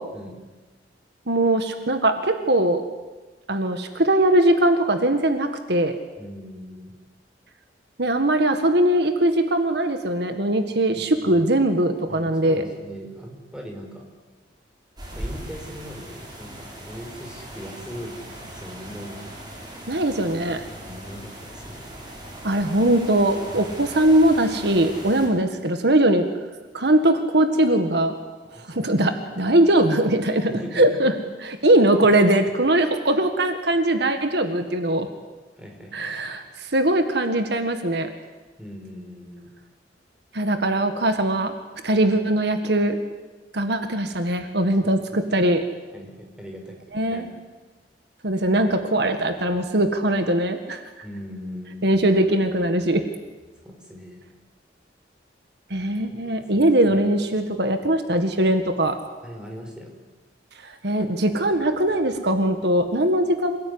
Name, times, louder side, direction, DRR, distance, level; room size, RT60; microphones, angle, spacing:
voice 1, 1.3-2.8 3.5-6.0 8.0-12.6 19.9-20.7 22.4-26.3 26.7-28.2 28.6-31.1 31.4-35.1 35.9-38.1 40.3-41.6 41.8-43.0 43.5-45.6 46.9-47.3 48.2-50.8 51.8-53.1 55.7-59.0 60.6-63.6, right 1 dB, 65° right, 7 dB, 1.9 m, -21 dB
voice 2, 6.2-6.9 10.9-11.5 12.1-14.0 15.1-19.2 20.8-22.0 25.2-25.3 28.5-29.1 29.4-29.5 30.5-31.0 31.6-31.7 35.6-36.3 38.6-39.5 44.7-44.8 45.3-45.5 45.9-46.8 47.1-47.2 51.0-51.9 53.6-54.2 56.1-56.2 56.5-57.1 59.2-60.0, equal, 5° right, 1 dB, 5.5 m, -40 dB
sound 1, 15.0-25.3, right 1 dB, 25° right, 7.2 m, -39 dB
27.5 x 18.5 x 9.8 m, 1.2 s
head